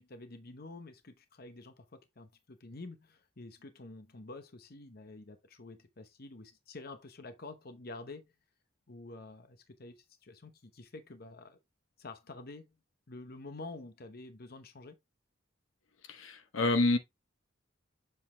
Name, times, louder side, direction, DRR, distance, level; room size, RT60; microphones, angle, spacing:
voice 1, 0.0-8.3 8.9-11.6 12.0-12.7 13.1-15.0, left 2 dB, 50° left, 0.9 m, -48 dB
voice 2, 16.1-17.0, left 2 dB, 75° left, 0.9 m, -28 dB
7.4 x 4.0 x 3.3 m
head